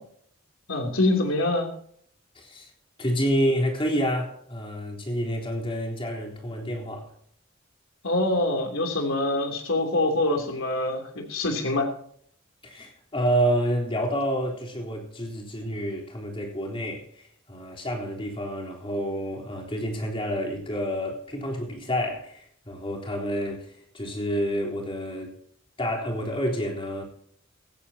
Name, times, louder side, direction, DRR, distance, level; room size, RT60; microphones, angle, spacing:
voice 1, 0.7-1.7 8.0-11.9, left 2 dB, 80° left, 3.1 m, -25 dB
voice 2, 2.4-2.7 3.0-7.1 12.6-25.3 25.8-27.0, equal, 25° left, 3.7 m, -29 dB
16.5 x 15.0 x 2.8 m
head